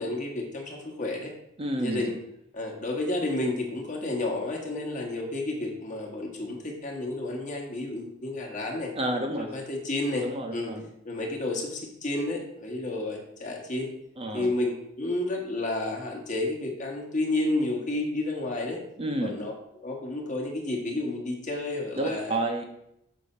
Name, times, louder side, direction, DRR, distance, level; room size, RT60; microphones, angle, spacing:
voice 1, 0.0-1.3 1.8-2.1 2.5-8.9 9.4-10.7 11.0-13.9 14.3-18.8 19.2-19.5 19.8-22.4, left 2 dB, 40° left, -1 dB, 1.2 m, -31 dB
voice 2, 1.6-2.0 9.0-9.5 10.2-10.9 14.2-14.5 19.0-19.3 22.0-22.6, right 1 dB, 30° right, 3 dB, 0.6 m, -29 dB
6.4 x 2.7 x 5.4 m, 0.79 s
head